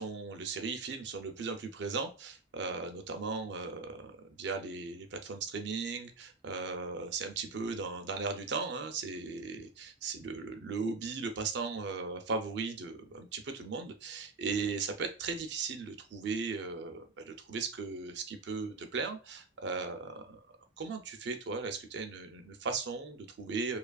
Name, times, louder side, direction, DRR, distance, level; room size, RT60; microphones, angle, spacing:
voice 1, 0.0-20.4 20.8-23.8, right 4 dB, 60° right, 6 dB, 0.5 m, -37 dB
2.8 x 2.4 x 2.3 m, 0.34 s
head